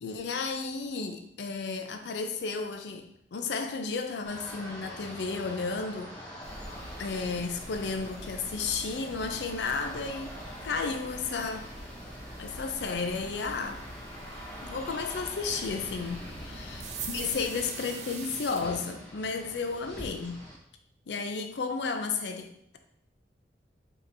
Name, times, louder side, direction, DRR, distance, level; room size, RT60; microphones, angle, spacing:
voice 1, 0.0-6.4 7.0-11.7 12.4-13.9 14.6-16.8 17.1-20.4 21.1-22.8, left 4 dB, 75° left, 0.4 m, -33 dB
sound 1, 4.3-20.6, equal, 10° left, 0.8 m, -45 dB
sound 2, 6.4-17.7, equal, 45° left, 1.6 m, -46 dB
sound 3, 16.8-18.6, right 6 dB, 40° right, 0.4 m, -40 dB
5.1 x 2.9 x 2.6 m
head